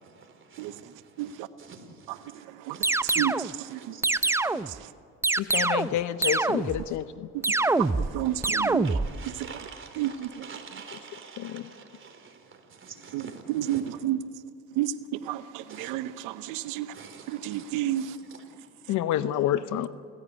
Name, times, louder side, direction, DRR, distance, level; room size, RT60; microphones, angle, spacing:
voice 1, 0.0-4.7 5.8-7.0 7.7-14.0 15.7-15.9 16.9-18.7, right 5 dB, 40° right, 3.7 m, -48 dB
voice 2, 1.2-1.5 2.3-2.8 3.0-3.9 4.4-4.9 7.3-8.9 10.0-10.3 13.1-13.2 13.5-14.2 14.7-16.9 17.3-18.2, right 13 dB, 85° right, 0.9 m, -31 dB
sound 1, 2.8-3.5 4.0-4.8 5.2-6.0 6.2-6.9 7.4-8.1 8.4-9.1, right 2 dB, 10° right, 0.6 m, -25 dB
voice 3, 5.4-7.3 11.5-11.6 18.9-19.9, left 11 dB, 70° left, 0.8 m, -28 dB
29.5 x 15.0 x 8.4 m
supercardioid pair, 95°, 31 cm